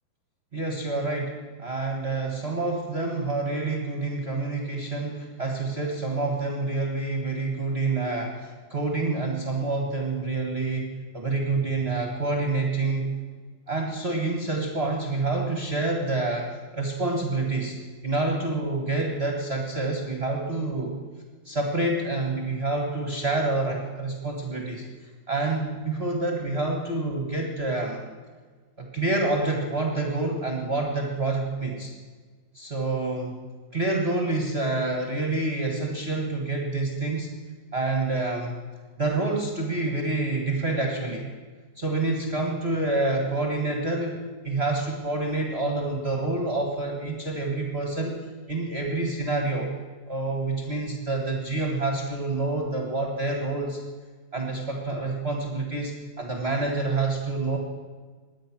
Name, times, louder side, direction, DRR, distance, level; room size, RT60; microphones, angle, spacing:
voice 1, 0.5-13.1 13.7-17.8 18.0-21.0 21.4-24.8 25.3-28.0 28.8-31.9 32.5-33.3 33.7-37.3 37.7-38.6 39.0-41.3 41.8-44.2 44.4-48.2 48.5-49.7 50.1-53.8 54.3-57.6, right 2 dB, 40° right, 1 dB, 0.8 m, -27 dB
21.5 x 8.9 x 6.1 m, 1.4 s
omnidirectional pair, 3.9 m